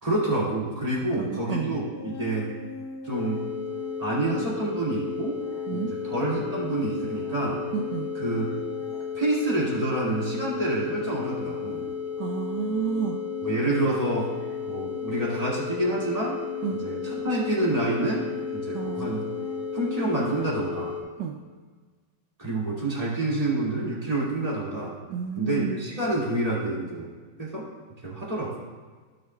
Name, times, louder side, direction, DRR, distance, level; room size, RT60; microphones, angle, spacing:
voice 1, 0.0-2.5 3.0-3.4 4.0-5.4 5.7-5.8 6.1-7.6 8.2-8.6 9.1-11.8 13.4-14.3 14.7-16.4 16.8-19.2 19.7-20.9 22.4-24.9 25.4-27.1 27.4-27.7 28.0-28.5, right 2 dB, 15° right, -6 dB, 2.2 m, -28 dB
voice 2, 1.2-1.7 5.7-5.9 7.7-8.1 12.2-13.2 16.6-16.9 18.7-19.1 21.2-21.4 25.1-25.8, right 7 dB, 75° right, 3 dB, 0.9 m, -30 dB
sound 1, 1.9-20.5, left 2 dB, 45° left, 0.7 m, -40 dB
sound 2, 3.1-21.0, left 7 dB, 15° left, 1.5 m, -34 dB
15.0 x 6.4 x 2.3 m, 1.5 s
omnidirectional pair, 2.4 m